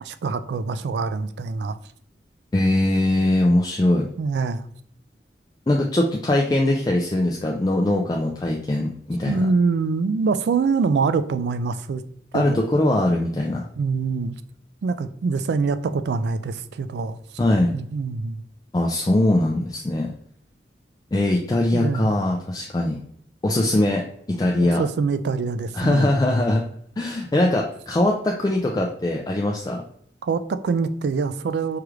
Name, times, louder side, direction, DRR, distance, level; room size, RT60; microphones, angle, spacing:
voice 1, 0.0-1.8 4.2-4.7 9.3-12.0 12.3-12.6 13.7-14.4 14.8-17.2 17.7-18.4 21.7-22.1 24.6-26.1 30.2-31.8, right 4 dB, 70° right, 12 dB, 0.3 m, -24 dB
voice 2, 2.5-4.1 5.7-9.4 12.3-13.7 17.4-17.7 18.7-20.1 21.1-23.0 23.4-24.8 25.7-26.6 27.0-29.8, left 1 dB, 20° left, -1 dB, 0.3 m, -21 dB
4.6 x 2.4 x 3.1 m, 0.67 s
head